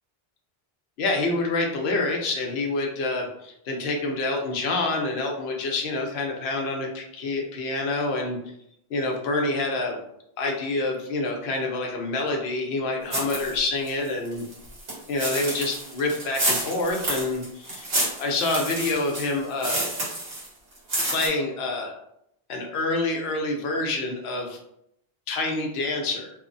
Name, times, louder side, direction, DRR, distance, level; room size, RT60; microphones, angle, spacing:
voice 1, 1.0-8.4 8.9-10.0 10.4-14.4 15.1-17.9 18.2-19.8 21.0-21.9 22.5-24.6 25.3-26.3, left 2 dB, 85° left, 1 dB, 0.9 m, -27 dB
sound 1, 13.1-13.6 13.9-20.5 20.8-21.3, right 1 dB, 75° right, 1.2 m, -29 dB
2.8 x 2.0 x 2.5 m, 0.77 s
omnidirectional pair, 1.0 m